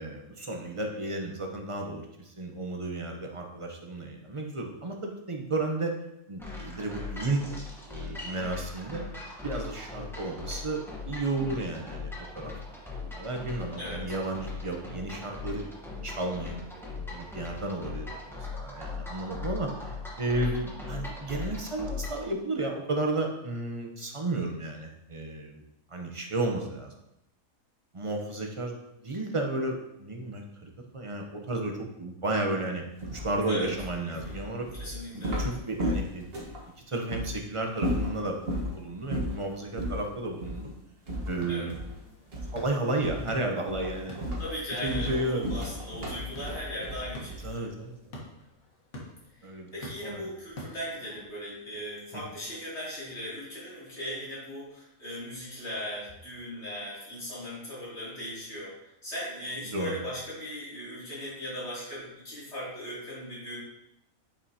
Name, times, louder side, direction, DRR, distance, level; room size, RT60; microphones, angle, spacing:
voice 1, 0.0-5.9 6.3-7.5 7.9-9.0 9.4-12.5 13.2-15.7 16.0-25.6 25.9-26.9 27.9-32.9 33.1-34.7 35.1-36.6 36.9-40.7 41.3-41.7 42.5-44.3 44.8-45.5 47.4-48.0 49.4-49.7 50.0-50.3 52.1-52.2 59.7-60.0, right 2 dB, 30° right, 2 dB, 0.7 m, -33 dB
sound 1, 6.4-22.3, left 3 dB, ahead, 1.0 m, -39 dB
voice 2, 20.3-20.7 33.5-33.7 34.1-34.4 34.8-35.5 41.5-41.7 44.4-47.7 49.4-63.6, equal, 50° left, -8 dB, 3.1 m, -38 dB
sound 2, 33.0-36.6 37.1-37.3 37.7-38.7 39.1-39.4 39.8-40.0 40.4-40.6 41.1-42.0 42.3-42.7 43.0-43.3 43.7-47.6, equal, 45° right, 1.5 m, -33 dB
sound 3, 41.1-51.3, left 1 dB, 85° left, 1.7 m, -48 dB
8.0 x 5.3 x 2.8 m, 0.83 s
omnidirectional pair, 1.4 m